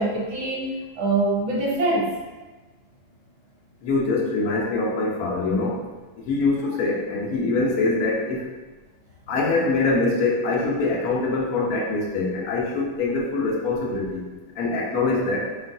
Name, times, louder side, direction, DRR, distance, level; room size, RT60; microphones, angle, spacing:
voice 1, 0.0-2.1, right 2 dB, 55° right, -5 dB, 1.0 m, -24 dB
voice 2, 3.8-5.8 6.2-8.5 9.3-14.2 14.5-15.5, left 3 dB, 70° left, -2 dB, 1.2 m, -24 dB
5.3 x 2.5 x 2.6 m, 1.2 s
omnidirectional pair, 1.7 m